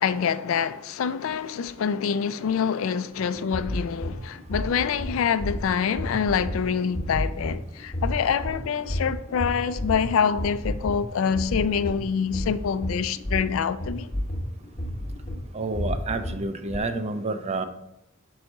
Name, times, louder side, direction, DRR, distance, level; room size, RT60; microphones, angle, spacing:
voice 1, 0.0-14.1, left 7 dB, 70° left, 0.4 m, -26 dB
sound 1, 3.2-16.8, equal, 35° left, 1.0 m, -32 dB
voice 2, 15.5-17.6, right 3 dB, 30° right, 0.5 m, -29 dB
6.4 x 4.7 x 4.0 m
head